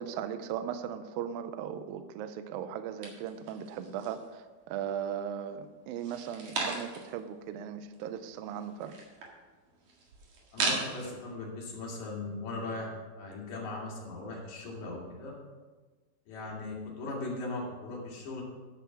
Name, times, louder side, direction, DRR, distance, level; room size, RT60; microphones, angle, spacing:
voice 1, 0.0-9.0, right 9 dB, 85° right, 10 dB, 2.1 m, -38 dB
sound 1, 3.0-4.3 4.7-5.4 5.9-7.2 7.5-7.6 7.8-11.1, right 3 dB, 60° right, 3.2 m, -37 dB
voice 2, 10.5-12.9 13.2-15.3 16.3-18.4, left 2 dB, 50° left, -3 dB, 3.5 m, -38 dB
10.5 x 7.1 x 5.9 m, 1.3 s
omnidirectional pair, 4.8 m